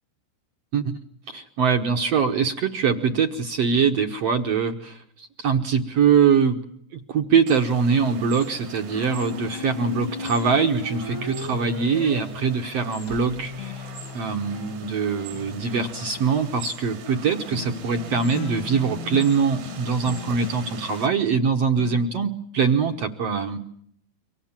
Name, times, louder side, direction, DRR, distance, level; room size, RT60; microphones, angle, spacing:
voice 1, 1.3-6.6 6.9-13.9 14.1-23.6, right 6 dB, 70° right, 4 dB, 1.5 m, -23 dB
sound 1, 7.5-21.1, right 6 dB, 90° right, 5.2 m, -42 dB
sound 2, 8.4-13.0 13.2-22.1, left 8 dB, 75° left, 3.3 m, -39 dB
sound 3, 8.8-14.7, left 3 dB, 55° left, 1.4 m, -36 dB
29.5 x 24.5 x 7.4 m, 0.66 s
omnidirectional pair, 4.8 m